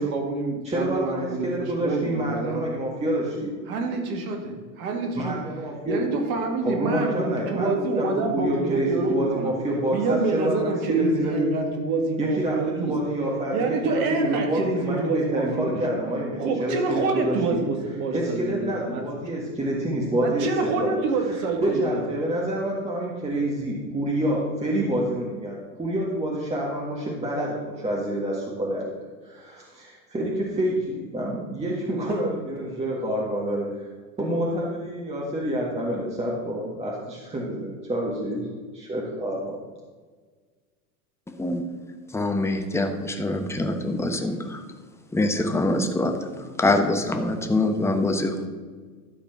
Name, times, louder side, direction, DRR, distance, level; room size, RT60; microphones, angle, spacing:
voice 1, 0.0-2.7 3.7-5.4 5.9-9.5 9.9-12.9 13.5-15.8 16.4-19.0 20.2-22.0, right 3 dB, 65° right, 3 dB, 2.0 m, -27 dB
voice 2, 0.6-3.5 5.1-6.1 6.6-11.5 12.2-17.6 18.1-20.5 20.8-20.9 21.3-28.8 29.2-33.9 34.2-38.5 38.7-39.6, right 1 dB, 15° right, -4 dB, 1.6 m, -27 dB
voice 3, 41.3-41.6 42.1-44.6 45.1-46.2 46.6-48.5, left 2 dB, 5° left, 5 dB, 0.9 m, -24 dB
12.0 x 4.2 x 5.8 m, 1.5 s
hypercardioid pair, 90°, 46 cm